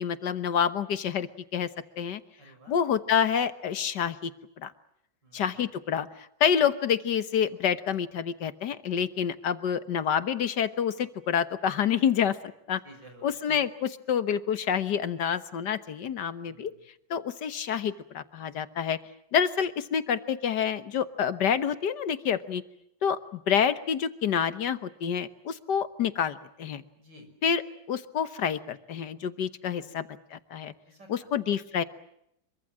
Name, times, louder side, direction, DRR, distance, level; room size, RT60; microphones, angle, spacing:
voice 1, 0.0-1.7 2.0-2.2 2.7-4.3 4.6-4.7 5.3-12.4 12.7-12.8 13.2-16.7 17.1-19.0 19.3-22.6 23.0-26.8 27.4-27.6 27.9-30.7 31.1-31.8, left 8 dB, 75° left, 12 dB, 1.8 m, -28 dB
voice 2, 2.4-2.8 5.2-5.6 12.7-13.6 16.4-16.8 27.0-27.3 29.6-30.0 30.9-31.3, right 1 dB, 85° right, 6 dB, 6.8 m, -53 dB
25.5 x 24.0 x 7.5 m, 0.76 s
omnidirectional pair, 1.9 m